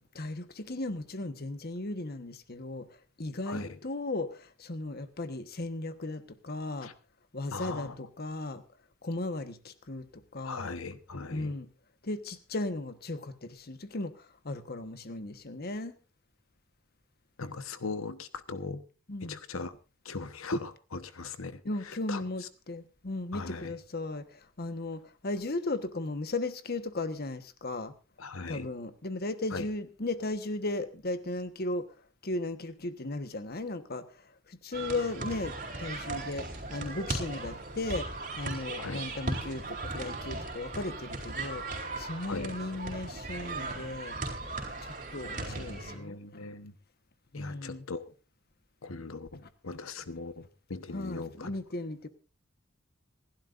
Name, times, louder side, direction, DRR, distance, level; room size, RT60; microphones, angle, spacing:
voice 1, 0.1-2.9 3.2-6.9 7.3-8.6 9.0-10.7 11.3-11.7 12.0-16.0 19.1-19.4 21.6-27.9 28.5-31.9 32.2-38.1 38.4-44.2 44.8-46.5 47.3-47.8 50.9-52.1, left 2 dB, 50° left, 1.2 m, -36 dB
voice 2, 7.5-8.0 10.4-11.5 17.4-18.8 19.2-19.7 20.0-22.2 23.3-23.7 28.2-28.7 29.5-29.7 38.8-39.0 42.3-42.5 45.4-46.7 47.3-48.1 48.8-51.5, left 3 dB, 85° left, 1.1 m, -39 dB
sound 1, 34.7-46.0, right 2 dB, 40° right, 3.9 m, -37 dB
27.0 x 12.0 x 2.6 m
head